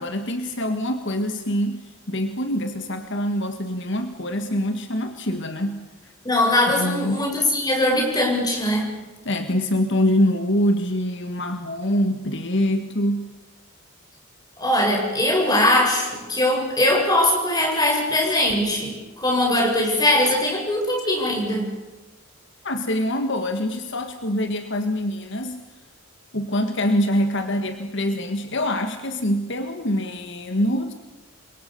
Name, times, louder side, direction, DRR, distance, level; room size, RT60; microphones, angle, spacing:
voice 1, 0.0-6.1 6.8-7.3 9.3-13.3 22.6-25.6 26.3-30.9, left 1 dB, 55° left, 7 dB, 1.8 m, -24 dB
voice 2, 6.2-8.9 14.6-21.6, left 1 dB, 20° left, 0 dB, 7.8 m, -21 dB
29.0 x 23.5 x 7.0 m, 1.2 s
head